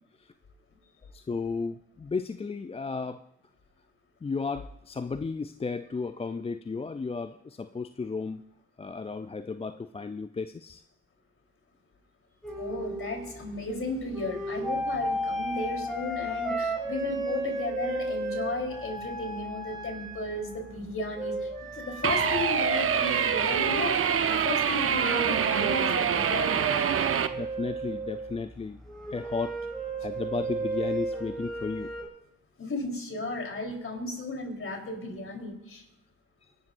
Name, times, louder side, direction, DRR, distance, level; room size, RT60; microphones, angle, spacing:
voice 1, 1.1-3.2 4.2-8.4 8.8-10.8 27.3-28.8 29.1-29.6 30.0-31.9, left 4 dB, 20° left, 10 dB, 0.5 m, -34 dB
sound 1, 12.4-32.1, right 1 dB, ahead, 5.7 m, -34 dB
voice 2, 12.5-26.9 32.6-35.8, left 2 dB, 45° left, 2 dB, 3.8 m, -35 dB
sound 2, 22.0-27.3, right 7 dB, 45° right, 0.9 m, -25 dB
28.0 x 12.0 x 2.6 m, 0.77 s
hypercardioid pair, 50°, 30 cm